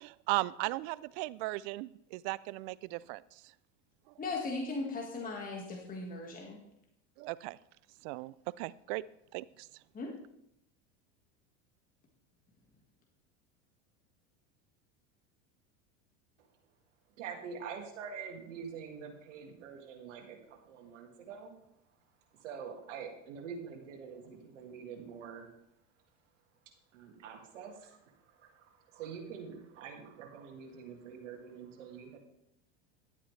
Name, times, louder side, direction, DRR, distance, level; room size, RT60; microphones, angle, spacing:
voice 1, 0.0-3.2 7.2-7.6 8.0-9.0 9.3-9.4, right 20 dB, 65° right, 20 dB, 0.5 m, -36 dB
voice 2, 4.2-6.6 9.9-10.1, left 3 dB, 25° left, 0 dB, 1.7 m, -38 dB
voice 3, 17.2-21.6 22.3-25.5 26.9-32.2, right 6 dB, 85° right, 2 dB, 2.1 m, -46 dB
11.5 x 8.6 x 3.3 m, 0.78 s
supercardioid pair, 110°, 36 cm